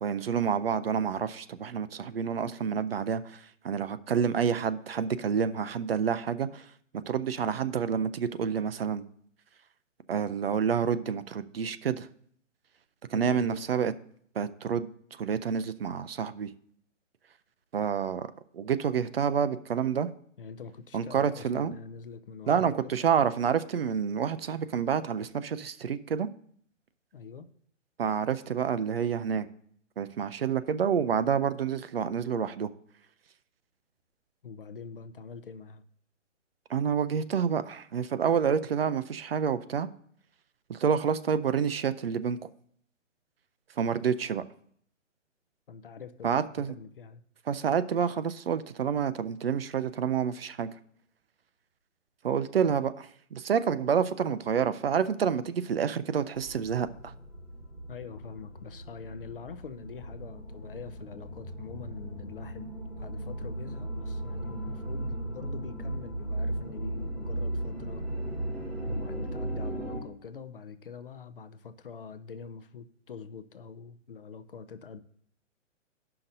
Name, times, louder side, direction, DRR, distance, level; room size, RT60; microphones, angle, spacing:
voice 1, 0.0-6.7 7.1-9.0 10.1-12.1 13.1-13.9 14.4-14.9 15.2-16.5 17.7-18.3 18.5-20.1 20.9-21.8 22.5-26.3 28.0-29.5 30.0-32.7 36.7-39.9 40.7-42.4 43.8-44.4 46.2-46.7 47.5-50.7 52.2-57.1, right 7 dB, 50° right, 0.4 m, -28 dB
voice 2, 13.1-13.7 20.4-23.0 27.1-27.5 34.4-35.8 45.7-46.4 46.7-47.2 57.9-62.7 63.0-68.0 68.8-75.0, left 6 dB, 45° left, 0.5 m, -44 dB
sound 1, 56.3-70.0, right 1 dB, 5° right, 1.7 m, -36 dB
16.5 x 5.8 x 2.6 m
hypercardioid pair, 175°, 38 cm